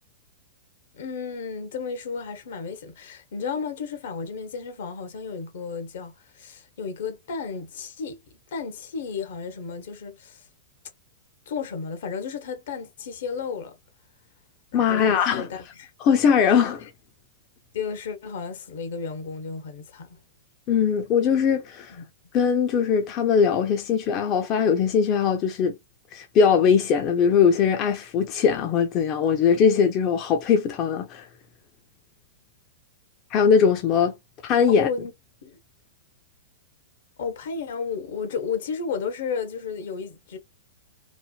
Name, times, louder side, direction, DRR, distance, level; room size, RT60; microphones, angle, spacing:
voice 1, 0.9-8.2 8.5-10.4 11.5-13.8 14.7-15.9 16.8-16.9 17.7-20.2 21.9-22.0 34.7-35.1 35.4-35.6 37.2-40.4, left 5 dB, 70° left, 1.0 m, -33 dB
voice 2, 14.7-15.5 16.0-16.9 20.7-22.0 22.3-25.8 26.1-31.2 33.3-34.2 34.4-34.9, left 6 dB, 40° left, 0.6 m, -20 dB
3.2 x 2.0 x 2.3 m
hypercardioid pair, 125°, 0 cm